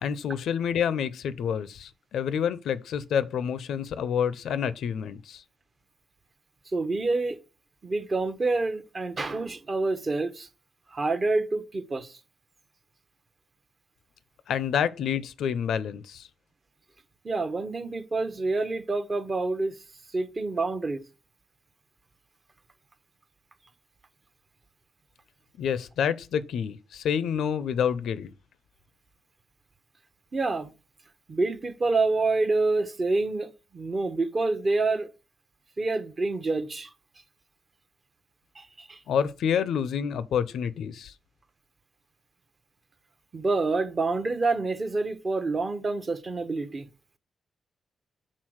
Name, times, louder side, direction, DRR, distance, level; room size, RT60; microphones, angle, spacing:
voice 1, 0.0-5.4 14.5-16.3 25.6-28.3 39.1-41.1, left 8 dB, 80° left, 0.5 m, -28 dB
voice 2, 6.7-7.4 7.8-10.5 10.9-12.1 17.2-19.7 20.1-21.0 30.3-30.7 31.3-35.1 35.8-36.9 38.6-39.0 43.3-46.9, right 3 dB, 25° right, 0.7 m, -27 dB
6.4 x 3.8 x 6.3 m
wide cardioid pair, 175°, 0 cm